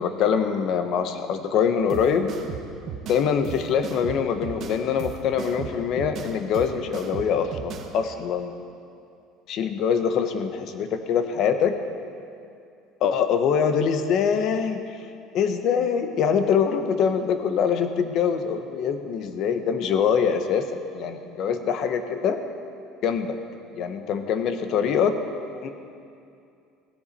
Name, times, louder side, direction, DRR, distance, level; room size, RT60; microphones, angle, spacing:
voice 1, 0.0-2.3 3.1-8.5 9.5-11.7 13.0-14.8 15.3-20.7 20.9-22.4 23.0-23.4 23.7-25.2 25.6-25.7, left 7 dB, 45° left, 8 dB, 0.9 m, -24 dB
sound 1, 1.9-7.9, right 7 dB, 35° right, 1.1 m, -36 dB
16.5 x 15.0 x 4.2 m, 2.5 s
cardioid pair, 175°, 0 cm